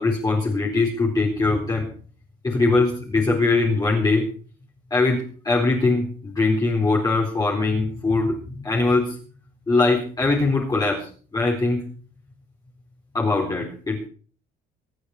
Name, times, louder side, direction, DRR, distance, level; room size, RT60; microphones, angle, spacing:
voice 1, 0.0-1.9 2.4-4.3 4.9-9.2 9.7-11.8 13.1-14.1, left 3 dB, 20° left, -2 dB, 4.1 m, -21 dB
25.0 x 8.7 x 4.9 m, 0.42 s
cardioid pair, 110°, 17 cm